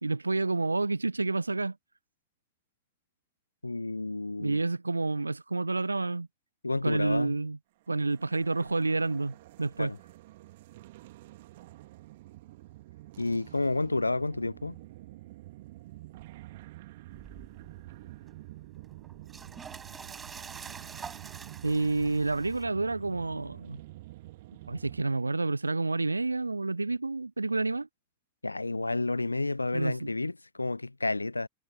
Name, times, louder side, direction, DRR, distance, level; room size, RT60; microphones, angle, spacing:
voice 1, 0.0-1.8 4.4-6.3 6.8-7.6 7.9-9.9 21.6-23.8 24.7-27.9 29.7-30.1, right 3 dB, 80° right, 0.8 m, -29 dB
voice 2, 3.6-4.6 6.6-7.4 9.8-10.0 13.2-14.8 28.4-31.5, left 2 dB, 80° left, 0.6 m, -30 dB
sound 1, 7.9-25.0, right 17 dB, 55° right, 2.2 m, -48 dB
sound 2, 17.1-22.6, right 6 dB, 20° right, 7.8 m, -47 dB
figure-of-eight pair, 90°, 0 cm